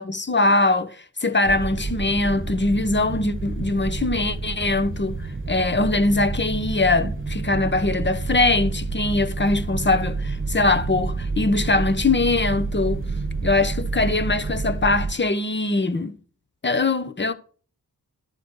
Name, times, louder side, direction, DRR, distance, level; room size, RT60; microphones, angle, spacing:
voice 1, 0.0-5.2 5.5-13.0 13.4-16.1 16.6-17.3, left 2 dB, 25° left, 1.0 m, -22 dB
sound 1, 1.4-15.1, right 3 dB, 30° right, 1.3 m, -29 dB
11.0 x 4.9 x 6.4 m
cardioid pair, 45°, 41 cm